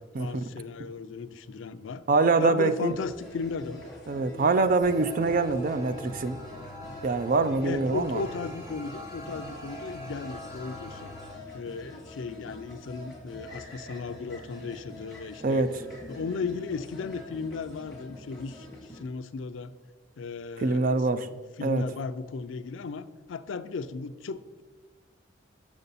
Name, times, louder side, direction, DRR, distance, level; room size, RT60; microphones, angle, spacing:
voice 1, 0.2-2.0 2.4-3.8 7.6-11.1 11.5-15.7 16.1-18.7 18.9-19.7 20.2-24.6, left 4 dB, 80° left, 12 dB, 0.4 m, -36 dB
voice 2, 2.1-2.9 4.1-6.4 7.0-8.2 15.4-15.7 20.6-21.3 21.6-21.8, right 3 dB, 45° right, 11 dB, 0.4 m, -24 dB
sound 1, 2.9-19.0, left 1 dB, ahead, 1.8 m, -46 dB
sound 2, 4.8-11.3, equal, 15° right, 1.8 m, -43 dB
6.8 x 6.0 x 4.1 m, 1.3 s
head